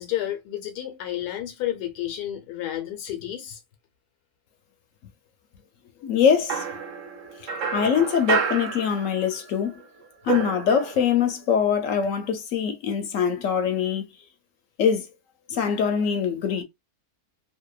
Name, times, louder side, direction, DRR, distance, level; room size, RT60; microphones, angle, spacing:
voice 1, 0.0-3.6, left 12 dB, 90° left, 1.2 m, -31 dB
voice 2, 6.0-6.6 7.4-9.8 10.2-14.1 14.8-15.1 15.5-16.6, left 7 dB, 65° left, 0.9 m, -23 dB
sound 1, 6.5-9.5 9.8-11.3, right 6 dB, 65° right, 0.9 m, -30 dB
2.8 x 2.1 x 2.2 m
omnidirectional pair, 1.6 m